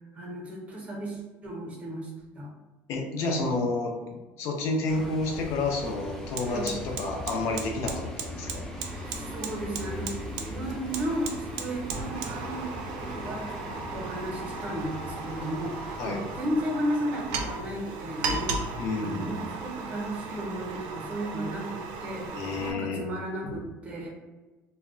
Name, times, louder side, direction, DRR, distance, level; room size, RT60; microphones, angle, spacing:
voice 1, 0.1-2.1 2.4-2.5 3.2-3.4 4.9-5.1 6.5-6.8 9.1-24.1, right 1 dB, 20° right, -2 dB, 0.7 m, -34 dB
voice 2, 2.9-4.0 4.4-8.6 16.0-16.2 18.8-19.5 22.3-23.0 23.4-23.5, left 3 dB, 55° left, 1 dB, 0.5 m, -30 dB
sound 1, 4.9-16.4, left 1 dB, 5° left, 0.4 m, -40 dB
Fire, 5.2-5.4 5.7-22.7, right 4 dB, 75° right, 0.4 m, -37 dB
2.2 x 2.1 x 3.6 m, 1.2 s
cardioid pair, 155°, 6 cm